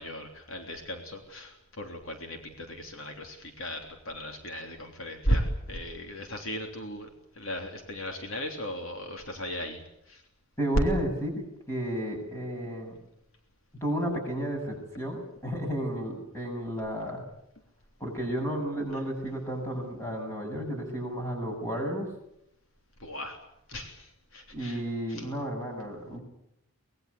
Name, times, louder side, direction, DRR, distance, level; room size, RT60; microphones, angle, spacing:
voice 1, 0.0-7.1 7.3-9.8 10.1-10.2 23.0-23.4 23.7-24.8 25.1-25.3, equal, 65° left, 4 dB, 3.3 m, -35 dB
voice 2, 10.6-13.0 13.8-17.2 18.0-22.1 24.5-26.2, equal, 10° left, 1 dB, 7.7 m, -32 dB
24.5 x 20.5 x 8.5 m, 0.80 s
head